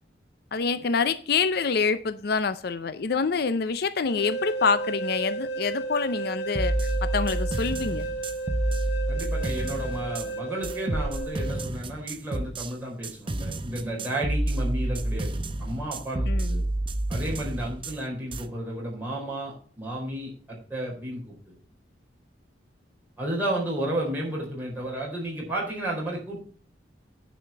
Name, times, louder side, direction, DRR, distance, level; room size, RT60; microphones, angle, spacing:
voice 1, 0.5-6.7 7.0-8.1 16.3-16.6, left 5 dB, 60° left, 13 dB, 0.5 m, -26 dB
sound 1, 4.1-11.7, right 3 dB, 80° left, 3.1 m, -33 dB
sound 2, 6.6-10.3 10.6-12.7 13.0-18.0 18.3-18.4, right 1 dB, 30° right, 0.7 m, -29 dB
voice 2, 9.1-16.6 17.1-21.3 23.2-26.4, right 1 dB, 10° right, -5 dB, 4.4 m, -32 dB
10.0 x 5.0 x 7.0 m, 0.43 s
head